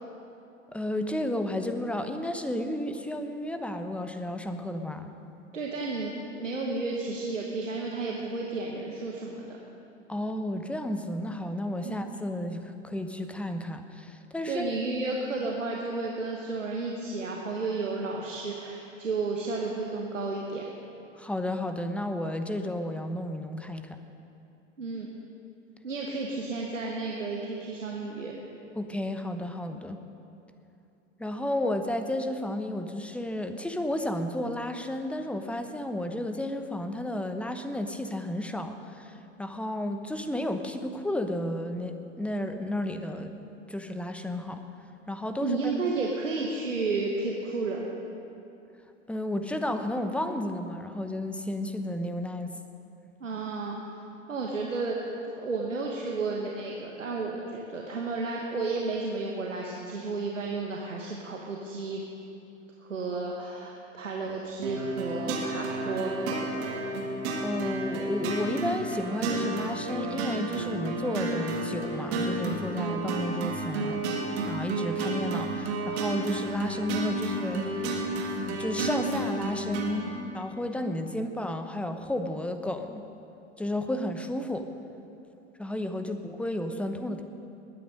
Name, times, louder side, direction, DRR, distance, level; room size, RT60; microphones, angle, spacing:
voice 1, 0.7-5.1 10.1-14.7 21.2-24.0 28.8-30.0 31.2-43.3 43.7-44.6 45.1-45.7 49.1-52.5 67.4-77.8 78.6-80.1 80.3-83.1 83.6-84.7 85.6-87.2, left 1 dB, 5° left, 7 dB, 0.9 m, -32 dB
voice 2, 5.5-9.6 11.8-12.0 14.4-20.6 24.8-25.1 25.8-28.3 45.4-47.9 53.2-53.8 54.3-55.1 55.4-62.0 62.8-66.8, right 3 dB, 90° right, -1 dB, 1.4 m, -32 dB
sound 1, 64.6-80.1, right 2 dB, 60° right, 2.6 m, -31 dB
20.0 x 9.4 x 5.3 m, 2.8 s
figure-of-eight pair, 85°, 37 cm